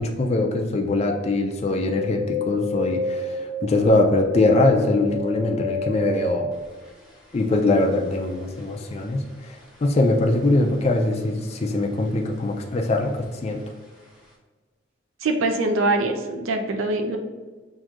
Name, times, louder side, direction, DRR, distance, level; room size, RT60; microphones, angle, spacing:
voice 1, 0.0-6.5 7.3-13.6, left 2 dB, 30° left, 2 dB, 0.3 m, -22 dB
sound 1, 1.8-11.3 11.5-12.4 12.7-13.7 14.0-14.1, left 2 dB, 5° right, 0.8 m, -31 dB
voice 2, 15.2-17.2, right 2 dB, 85° right, 4 dB, 0.5 m, -23 dB
5.9 x 2.6 x 2.4 m, 1.3 s
head